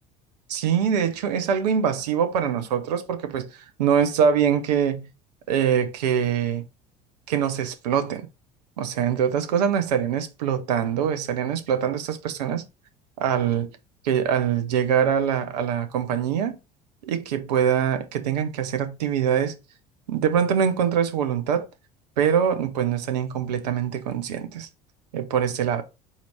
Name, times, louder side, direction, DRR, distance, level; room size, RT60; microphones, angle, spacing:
voice 1, 0.5-3.5 3.8-5.1 5.5-6.6 7.3-8.3 8.8-12.6 13.2-13.7 14.0-16.6 17.0-19.6 20.1-21.7 22.2-24.7 25.1-25.8, right 8 dB, 75° right, 0.7 m, -23 dB
4.3 x 2.8 x 4.4 m
hypercardioid pair, 70°, 21 cm